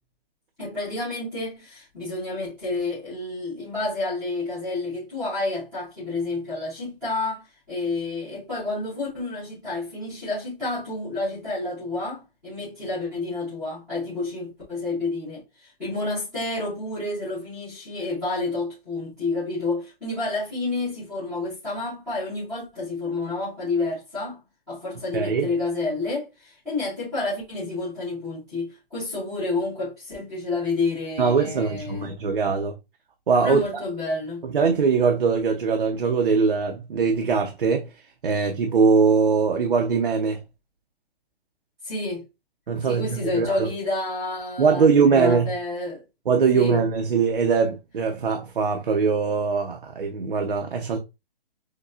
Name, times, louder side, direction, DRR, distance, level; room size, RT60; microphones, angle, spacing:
voice 1, 0.6-24.4 24.7-32.1 33.4-34.4 41.8-42.2 42.8-46.0 46.5-46.8, left 3 dB, 5° left, 0.7 m, -29 dB
voice 2, 25.1-25.5 31.2-32.8 33.3-33.6 34.4-37.9 38.2-40.4 42.7-43.7 44.6-45.5 46.3-51.0, right 5 dB, 60° right, 0.7 m, -21 dB
6.5 x 2.3 x 2.4 m
hypercardioid pair, 180°, 30 cm